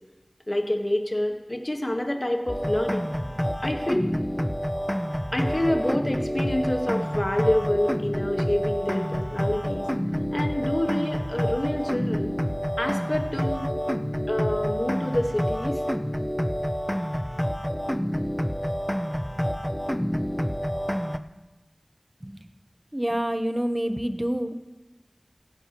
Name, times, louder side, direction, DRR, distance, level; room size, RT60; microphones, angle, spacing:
voice 1, 0.5-3.1 3.6-4.1 5.3-9.9 10.3-12.3 12.8-13.7 14.3-15.8, left 1 dB, 35° left, 3 dB, 1.5 m, -27 dB
sound 1, 2.5-21.2, equal, 5° left, 0.6 m, -28 dB
voice 2, 22.9-24.5, equal, 25° right, 9 dB, 0.9 m, -27 dB
16.0 x 16.0 x 3.0 m, 1.1 s
wide cardioid pair, 45°, 0 cm